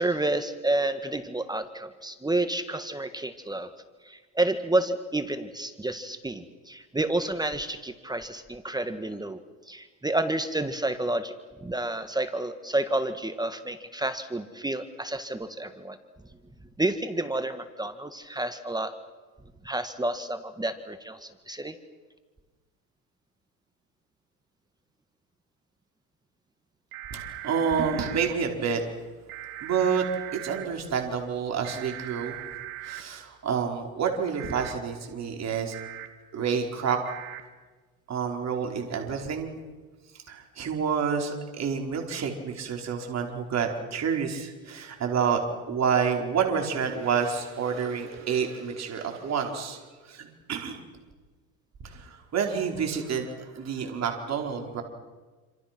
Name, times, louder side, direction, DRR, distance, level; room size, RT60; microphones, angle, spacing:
voice 1, 0.0-3.7 4.0-9.4 9.7-11.3 11.6-16.0 16.8-18.9 19.6-21.7, right 2 dB, 10° right, 9 dB, 1.6 m, -30 dB
sound 1, 26.9-28.3 29.3-30.7 31.6-33.0 34.4-34.7 35.7-36.1 37.0-37.4, right 14 dB, 80° right, 2.8 m, -39 dB
voice 2, 27.1-28.8 29.6-30.1 30.3-32.4 32.8-35.7 36.3-37.0 38.1-39.5 40.3-45.4 45.7-49.8 50.0-50.8 51.8-54.8, right 6 dB, 40° right, 2 dB, 4.8 m, -28 dB
28.0 x 27.0 x 6.1 m, 1.3 s
supercardioid pair, 105°, 41 cm